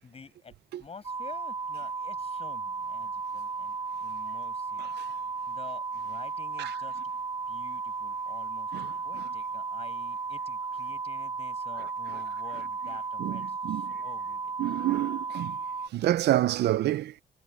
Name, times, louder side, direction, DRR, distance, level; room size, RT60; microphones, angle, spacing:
voice 1, 0.0-0.5 0.8-4.9 5.5-7.0 7.5-8.7 9.0-14.5, left 5 dB, 35° left, 6.6 m, -49 dB
sound 1, 1.0-15.9, right 4 dB, 25° right, 1.5 m, -35 dB
voice 2, 8.7-9.2 13.2-13.9 14.6-15.6 15.9-17.2, right 14 dB, 80° right, 0.6 m, -28 dB
cardioid pair, 115°, 17 cm